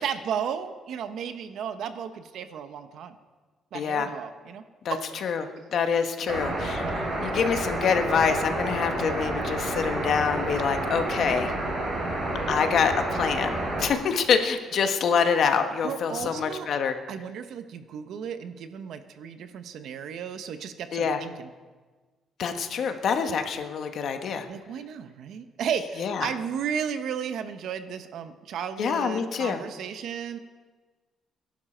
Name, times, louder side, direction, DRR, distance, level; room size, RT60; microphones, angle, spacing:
voice 1, 0.0-3.1 3.7-4.6 4.9-5.0 15.8-16.7 17.1-21.5 24.5-30.4, right 8 dB, 65° right, 9 dB, 1.0 m, -34 dB
voice 2, 3.7-4.1 4.8-5.0 5.2-11.5 12.5-16.9 20.9-21.2 22.4-24.4 26.0-26.3 28.8-29.6, left 6 dB, 50° left, 6 dB, 1.2 m, -26 dB
sound 1, 6.3-13.9, right 1 dB, 30° right, 3.6 m, -29 dB
22.0 x 11.5 x 4.5 m, 1.4 s
cardioid pair, 175°, 0 cm